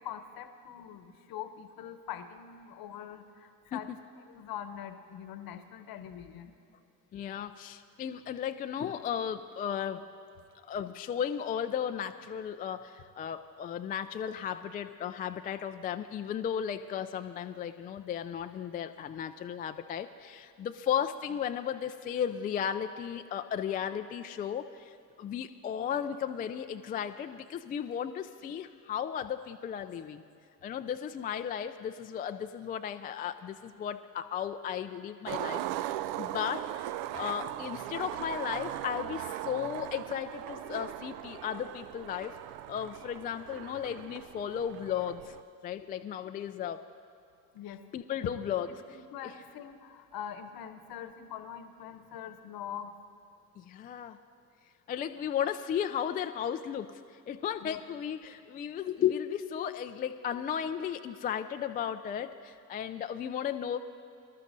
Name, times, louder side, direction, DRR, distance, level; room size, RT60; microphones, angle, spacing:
voice 1, 0.0-3.9 4.2-6.5 47.5-47.9 48.7-52.9 57.6-57.8, left 9 dB, 50° left, 9 dB, 1.0 m, -43 dB
voice 2, 7.1-10.0 10.6-30.2 30.6-36.9 37.1-42.3 42.7-45.4 45.6-46.9 47.9-48.7 49.2-49.3 53.6-54.2 54.9-57.0 57.3-63.8, left 9 dB, 20° left, 8 dB, 0.3 m, -35 dB
Skateboard, 35.3-45.4, right 13 dB, 60° right, 0.5 m, -39 dB
24.5 x 12.5 x 2.7 m, 2.4 s
figure-of-eight pair, 55°, 46 cm